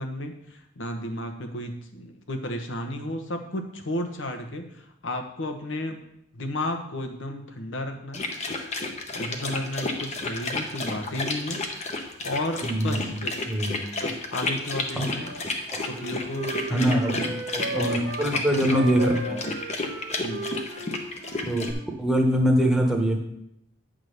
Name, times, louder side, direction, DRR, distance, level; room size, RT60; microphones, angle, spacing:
voice 1, 0.0-6.0 6.3-8.3 9.1-11.6 12.2-13.3 14.0-15.3 15.8-17.3 17.7-18.1 18.3-18.8 19.3-19.6 20.2-20.5, left 1 dB, 75° left, 5 dB, 1.1 m, -33 dB
sound 1, 8.1-21.7, left 2 dB, 35° left, 0.9 m, -31 dB
voice 2, 12.6-13.2 13.5-13.8 15.0-15.1 16.7-17.2 17.5-19.4 21.4-21.7 22.0-23.2, equal, 5° right, 1 dB, 1.1 m, -23 dB
Wind instrument woodwind instrument, 15.1-18.3 18.7-21.9, right 2 dB, 80° right, 1.0 m, -36 dB
9.3 x 3.8 x 6.5 m, 0.79 s
head